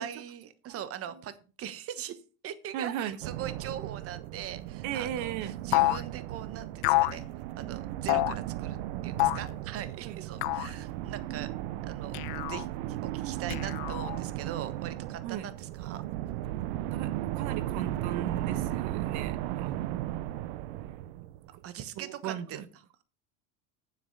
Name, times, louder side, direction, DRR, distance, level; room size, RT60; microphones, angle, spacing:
voice 1, 0.0-1.3 1.6-7.2 7.6-8.8 9.0-11.5 11.8-12.7 13.0-16.0 21.6-22.6, right 10 dB, 45° right, 1.3 m, -41 dB
voice 2, 2.7-3.2 4.8-5.5 10.0-10.2 15.2-15.5 16.9-20.2 22.0-22.6, right 10 dB, 65° right, 1.4 m, -37 dB
sound 1, 3.2-21.7, right 14 dB, 80° right, 0.7 m, -36 dB
sound 2, 5.7-6.0 6.8-7.2 8.1-8.4 9.2-9.5 10.4-10.7 12.1-12.6 13.5-14.2, left 22 dB, 80° left, 0.6 m, -27 dB
9.1 x 7.8 x 5.4 m
supercardioid pair, 110°, 32 cm